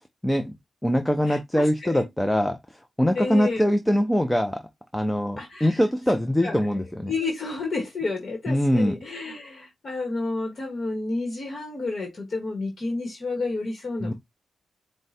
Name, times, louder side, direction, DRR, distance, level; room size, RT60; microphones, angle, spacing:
voice 1, 0.2-0.6 0.8-4.6 4.9-7.1 8.5-9.0 14.0-14.1, equal, 5° left, 0.5 m, -23 dB
voice 2, 1.2-2.0 3.1-3.7 5.4-5.8 6.4-6.7 7.1-14.1, left 3 dB, 45° left, 1.2 m, -30 dB
4.6 x 2.1 x 4.0 m
wide cardioid pair, 115°, 0 cm